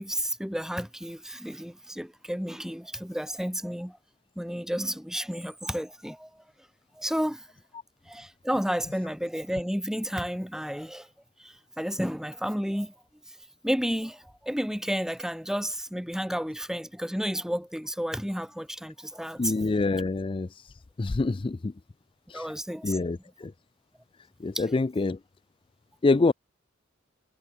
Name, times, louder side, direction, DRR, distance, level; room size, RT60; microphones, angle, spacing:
voice 1, 0.0-4.0 4.4-6.3 7.0-7.4 8.1-11.1 11.4-12.9 13.6-19.5 22.3-23.0 24.5-24.6, equal, ahead, 4.8 m, -31 dB
voice 2, 19.4-21.7 22.3-22.5 22.8-23.5 24.4-25.2 26.0-26.3, left 3 dB, 25° left, 0.4 m, -26 dB
head